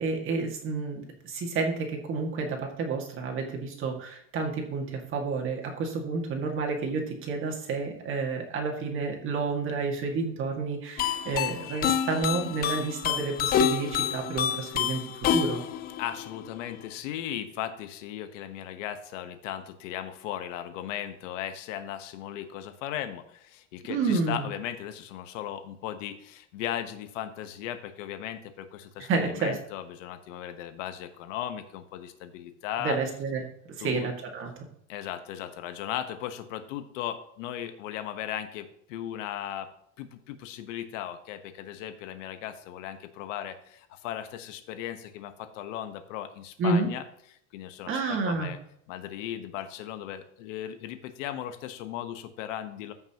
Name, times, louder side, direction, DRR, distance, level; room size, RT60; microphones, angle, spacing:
voice 1, 0.0-15.0 15.3-15.6 23.9-24.5 29.1-29.6 32.8-33.4 33.8-34.5 46.6-46.9 47.9-48.5, right 4 dB, 35° right, 1 dB, 2.1 m, -30 dB
sound 1, 11.0-16.9, left 9 dB, 25° left, 0.4 m, -28 dB
voice 2, 16.0-33.0 33.8-34.1 34.9-39.7 40.0-47.0 47.5-48.6 48.9-52.9, left 11 dB, 90° left, 9 dB, 1.3 m, -37 dB
14.5 x 6.0 x 3.0 m, 0.70 s
cardioid pair, 160°, 36 cm